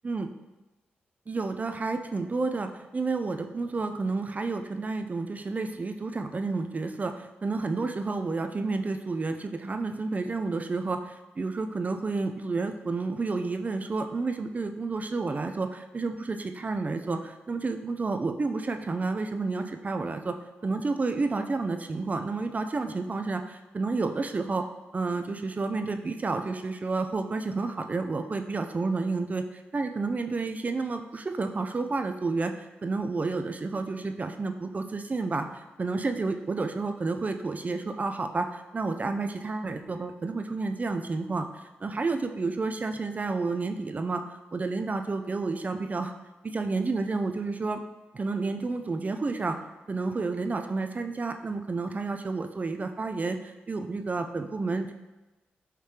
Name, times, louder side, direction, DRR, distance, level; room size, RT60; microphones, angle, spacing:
voice 1, 1.3-20.3 20.6-24.6 24.9-29.4 29.7-32.5 32.8-41.5 41.8-44.2 44.5-46.1 46.4-47.8 48.1-49.6 49.9-54.9, right 3 dB, 35° right, 7 dB, 0.4 m, -30 dB
5.0 x 3.3 x 2.8 m, 1.1 s
supercardioid pair, 45°, 4 cm